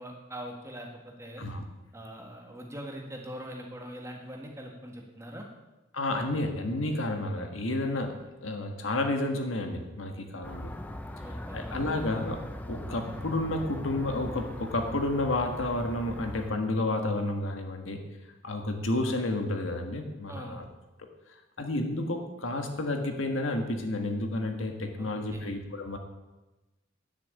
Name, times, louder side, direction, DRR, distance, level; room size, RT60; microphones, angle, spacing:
voice 1, 0.0-1.4 1.9-5.5 7.9-8.0 11.2-11.6 20.3-20.6 25.0-25.5, equal, 15° right, 1 dB, 1.7 m, -42 dB
voice 2, 5.9-10.7 11.5-18.0 18.4-20.6 21.6-26.0, left 2 dB, 85° left, 5 dB, 1.6 m, -31 dB
sound 1, 10.4-16.5, left 1 dB, 10° left, 0.7 m, -40 dB
10.5 x 6.7 x 8.4 m, 1.1 s
head